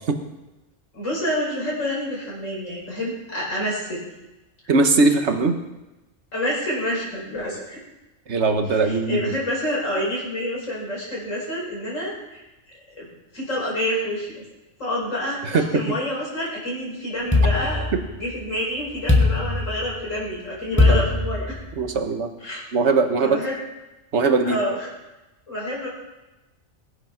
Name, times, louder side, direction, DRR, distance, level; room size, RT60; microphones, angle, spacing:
voice 1, 0.9-4.0 6.3-7.8 8.8-12.4 13.0-13.1 13.3-14.4 14.8-17.9 18.1-21.6 22.4-22.6 23.2-23.6 24.4-24.9 25.5-25.9, equal, 80° left, -5 dB, 5.4 m, -28 dB
voice 2, 4.7-5.5 8.3-9.2 15.4-15.6 17.9-18.0 20.9-21.0 21.8-22.3 22.7-23.4 24.1-24.6, right 3 dB, 65° right, 6 dB, 1.6 m, -20 dB
sound 1, 17.3-18.4 19.1-20.1 20.8-21.9, left 3 dB, 10° left, 2.0 m, -20 dB
20.5 x 8.7 x 5.9 m, 1.0 s
omnidirectional pair, 1.3 m